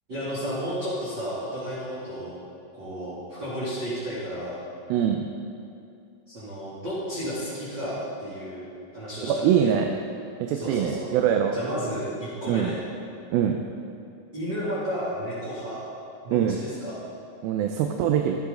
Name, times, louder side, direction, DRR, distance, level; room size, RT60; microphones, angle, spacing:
voice 1, 0.1-2.4 2.7-4.6 6.3-8.6 8.9-9.8 10.5-11.1 11.5-12.8 14.3-15.8 16.2-17.0, equal, 35° right, -11 dB, 3.0 m, -32 dB
voice 2, 4.9-5.3 9.2-9.9 10.4-11.6 12.5-12.7 13.3-13.6 16.3-16.6 17.4-18.4, right 9 dB, 90° right, 4 dB, 2.5 m, -23 dB
15.0 x 9.9 x 3.9 m, 2.6 s
omnidirectional pair, 4.2 m